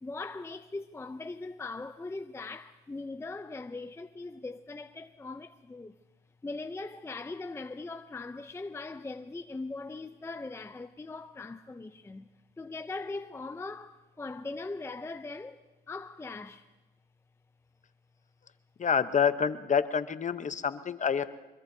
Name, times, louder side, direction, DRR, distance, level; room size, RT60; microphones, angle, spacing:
voice 1, 0.0-6.0 6.4-12.3 12.6-16.7, left 3 dB, 15° left, 0.5 m, -40 dB
voice 2, 18.8-21.3, left 7 dB, 40° left, 0.8 m, -27 dB
24.0 x 22.0 x 2.7 m
cardioid pair, 90°, 20 cm